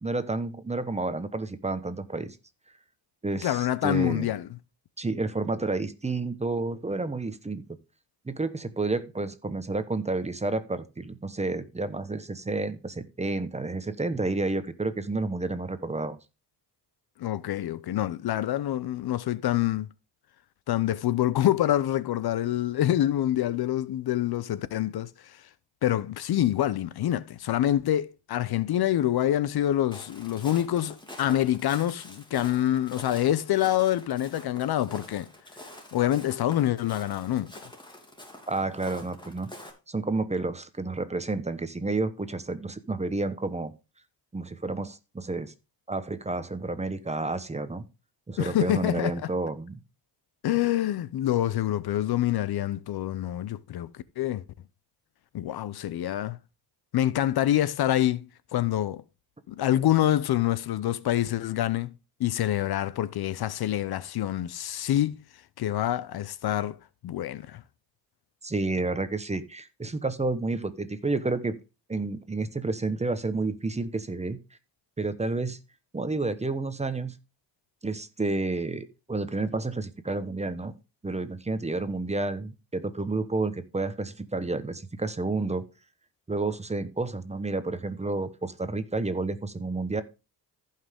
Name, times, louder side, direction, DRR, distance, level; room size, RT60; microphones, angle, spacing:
voice 1, 0.0-2.4 3.2-4.3 5.0-7.6 8.2-16.2 38.5-39.5 39.9-43.7 44.3-45.5 45.9-47.8 48.3-49.8 68.4-71.6 71.9-74.4 75.0-75.6 75.9-77.1 77.8-80.7 81.0-85.6 86.3-90.0, right 3 dB, 15° right, 1.0 m, -30 dB
voice 2, 3.4-4.5 17.2-19.9 20.7-25.4 25.8-35.3 35.9-37.5 48.4-49.1 50.4-53.9 54.2-54.4 55.3-56.4 56.9-58.3 58.5-59.0 59.5-61.9 62.2-65.2 65.6-66.8 67.0-67.6, left 12 dB, 60° left, 0.7 m, -26 dB
Walk footsteps, 29.9-39.7, left 1 dB, 10° left, 3.0 m, -46 dB
14.5 x 5.8 x 3.6 m
cardioid pair, 110°, 43 cm